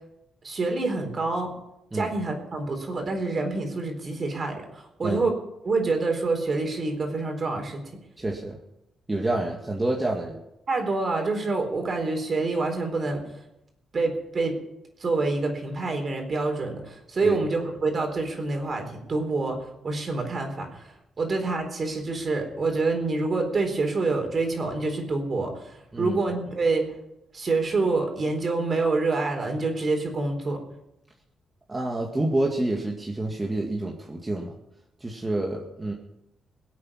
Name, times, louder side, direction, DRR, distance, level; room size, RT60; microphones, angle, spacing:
voice 1, 0.4-1.5 1.9-5.4 5.6-7.8 10.7-13.2 13.9-14.6 15.0-20.9 21.2-26.9 27.3-30.6, right 3 dB, 40° right, 4 dB, 4.1 m, -27 dB
voice 2, 8.2-8.6 9.1-10.4 17.2-17.4 25.9-26.2 31.7-34.5 35.0-35.9, right 2 dB, 15° right, -1 dB, 2.0 m, -28 dB
22.5 x 8.4 x 5.7 m, 0.85 s
cardioid pair, 105°, 0 cm